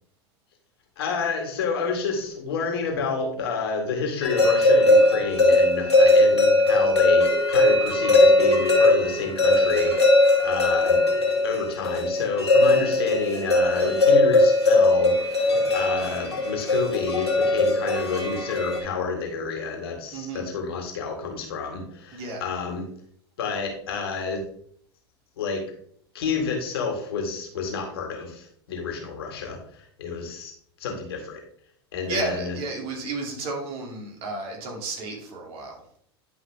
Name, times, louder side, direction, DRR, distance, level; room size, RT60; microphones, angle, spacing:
voice 1, 1.0-10.0 10.4-11.0 11.4-22.9 23.4-24.4 25.4-25.6 26.1-30.5 30.8-31.4 31.9-32.6, left 5 dB, 65° left, 3 dB, 2.0 m, -29 dB
sound 1, 4.2-18.8, left 2 dB, 85° left, 2.2 m, -19 dB
voice 2, 20.1-20.5 22.1-22.4 32.0-35.8, right 3 dB, 45° right, 0 dB, 2.7 m, -32 dB
10.5 x 5.3 x 3.5 m, 0.63 s
figure-of-eight pair, 85°, 14 cm